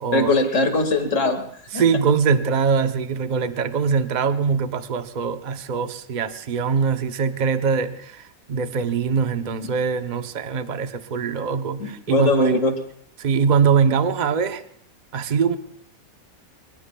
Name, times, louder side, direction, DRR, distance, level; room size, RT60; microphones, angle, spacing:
voice 1, 0.1-1.4 1.7-1.8 11.8-12.8, left 2 dB, 60° left, 5 dB, 2.2 m, -20 dB
voice 2, 1.7-8.2 8.5-12.6 13.2-14.6 15.1-15.6, right 6 dB, 40° right, 9 dB, 0.8 m, -22 dB
23.5 x 23.5 x 2.3 m, 0.65 s
omnidirectional pair, 1.5 m